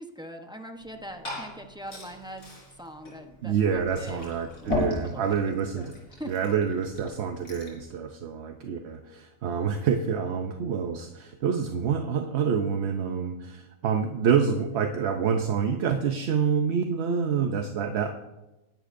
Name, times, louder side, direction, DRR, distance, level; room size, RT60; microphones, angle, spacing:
voice 1, 0.0-4.3 4.6-6.3, equal, 5° right, 4 dB, 0.6 m, -43 dB
Liquid, 0.7-7.8, left 1 dB, 90° left, 4.9 m, -37 dB
voice 2, 3.4-5.9 6.3-18.1, right 6 dB, 60° right, 5 dB, 0.9 m, -27 dB
20.0 x 11.5 x 2.6 m, 1.0 s
omnidirectional pair, 1.4 m